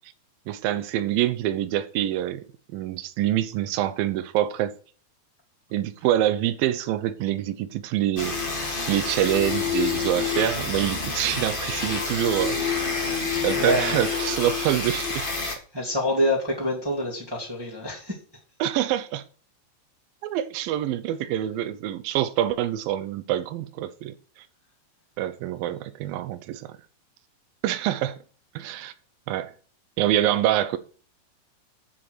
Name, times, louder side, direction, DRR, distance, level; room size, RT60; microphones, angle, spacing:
voice 1, 0.5-4.7 5.7-8.4 8.9-12.6 13.4-15.3 18.6-19.2 20.2-24.1 25.2-26.7 27.6-28.2 28.6-28.9 29.3-29.5 30.0-30.8, right 12 dB, 75° right, 2.3 m, -26 dB
sound 1, 8.2-15.6, left 4 dB, 40° left, 0.7 m, -28 dB
voice 2, 13.5-14.1 15.7-18.2, equal, 10° right, 1.8 m, -26 dB
8.8 x 7.4 x 6.6 m
omnidirectional pair, 4.6 m